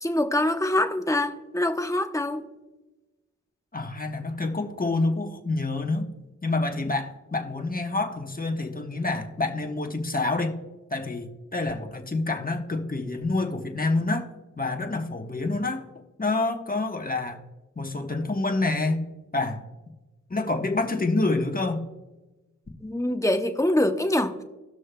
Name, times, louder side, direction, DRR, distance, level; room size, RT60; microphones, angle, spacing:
voice 1, 0.0-2.5 22.8-24.4, left 1 dB, 10° left, 6 dB, 0.8 m, -24 dB
voice 2, 3.7-6.1 6.4-10.6 10.9-14.3 14.6-15.9 16.2-17.4 17.8-19.1 19.3-19.6 20.3-21.8, left 2 dB, 30° left, 4 dB, 1.1 m, -27 dB
18.0 x 6.3 x 2.2 m, 1.1 s
cardioid pair, 45°, 31 cm